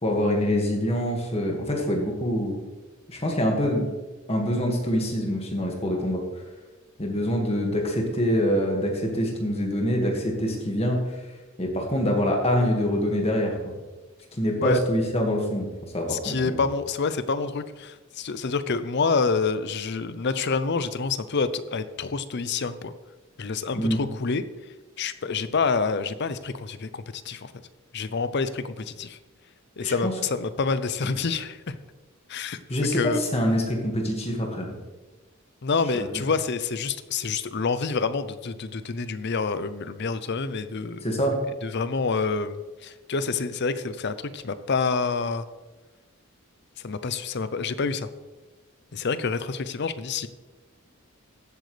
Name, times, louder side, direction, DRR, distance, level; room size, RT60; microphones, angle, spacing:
voice 1, 0.0-2.6 3.1-3.9 4.3-6.2 7.0-11.1 11.6-13.7 14.4-15.7 15.9-16.6 23.7-24.0 29.8-30.1 32.7-34.8 35.9-36.1 41.0-41.4, equal, 30° left, 1 dB, 1.9 m, -25 dB
voice 2, 16.1-22.9 23.4-24.4 25.0-27.5 27.9-29.2 29.8-31.8 32.3-32.6 32.9-33.2 35.6-41.0 41.6-45.4 46.8-48.1 48.9-50.3, left 4 dB, 50° left, 13 dB, 0.6 m, -27 dB
15.0 x 8.0 x 3.3 m, 1.2 s
head